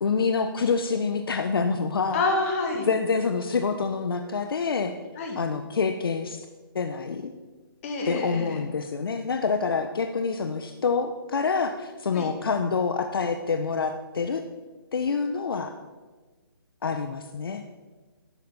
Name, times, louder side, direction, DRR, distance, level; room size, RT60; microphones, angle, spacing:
voice 1, 0.0-2.2 2.9-4.9 5.4-6.5 6.7-7.3 8.1-14.4 14.9-15.7 16.8-17.6, left 5 dB, 65° left, 7 dB, 0.7 m, -27 dB
voice 2, 2.1-2.9 5.2-5.4 7.8-8.6 12.1-12.3, left 3 dB, 35° left, 2 dB, 2.0 m, -27 dB
11.5 x 8.3 x 4.1 m, 1.3 s
hypercardioid pair, 155°, 13 cm